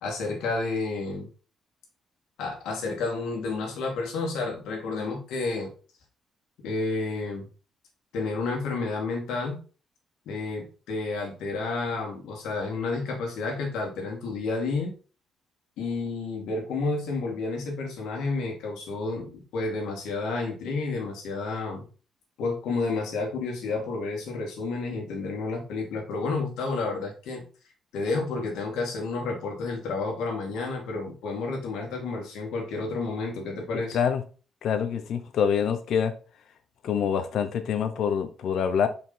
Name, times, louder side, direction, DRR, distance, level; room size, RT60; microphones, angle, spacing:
voice 1, 0.0-1.3 2.4-5.7 6.6-7.5 8.1-9.6 10.3-14.9 15.8-21.8 22.4-27.4 27.9-34.0, left 3 dB, 85° left, 2.3 m, -30 dB
voice 2, 34.6-36.1 36.8-38.9, left 7 dB, 70° left, 0.9 m, -25 dB
5.3 x 4.8 x 4.0 m
cardioid pair, 90°, 0 cm